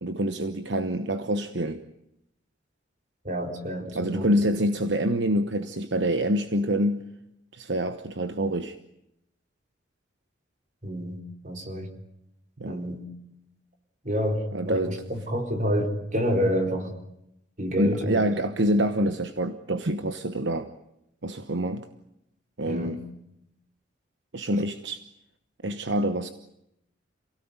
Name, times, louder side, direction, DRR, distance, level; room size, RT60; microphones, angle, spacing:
voice 1, 0.0-1.8 3.9-7.0 7.5-8.8 12.6-12.8 14.5-15.0 17.8-20.7 21.2-21.9 22.6-23.0 24.3-25.0 25.6-26.3, equal, 65° right, 9 dB, 1.1 m, -26 dB
voice 2, 3.2-4.5 10.8-11.2 11.4-11.9 12.7-13.0 14.0-16.9 17.6-18.2 22.7-22.9, equal, 40° right, 4 dB, 4.2 m, -28 dB
28.0 x 17.5 x 9.7 m, 0.82 s
head